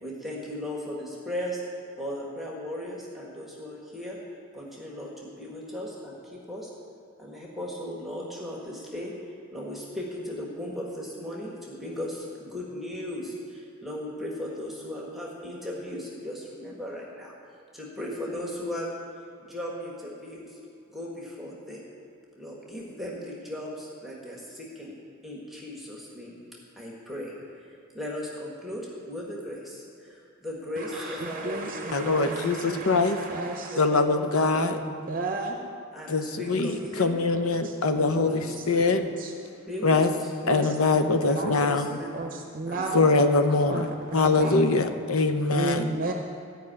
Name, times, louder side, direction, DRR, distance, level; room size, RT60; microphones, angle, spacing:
voice 1, 0.0-4.2 4.5-6.7 7.2-9.1 9.5-17.3 17.7-18.9 19.4-20.6 20.9-21.8 22.3-24.9 25.2-26.4 26.8-32.5 33.7-34.6 35.9-37.2 37.8-39.0 39.6-42.3 42.7-43.2 44.4-44.8, left 1 dB, ahead, -4 dB, 1.5 m, -37 dB
voice 2, 30.9-33.8 34.4-35.6 36.4-36.6 37.3-38.5 38.8-39.3 40.4-41.5 42.1-43.1 43.7-44.8 45.5-46.1, right 2 dB, 40° right, 3 dB, 0.7 m, -34 dB
voice 3, 31.9-33.2 33.8-34.8 36.1-39.0 39.8-40.1 40.5-41.8 42.9-45.9, left 3 dB, 85° left, 8 dB, 0.8 m, -23 dB
14.0 x 5.4 x 8.8 m, 2.5 s
head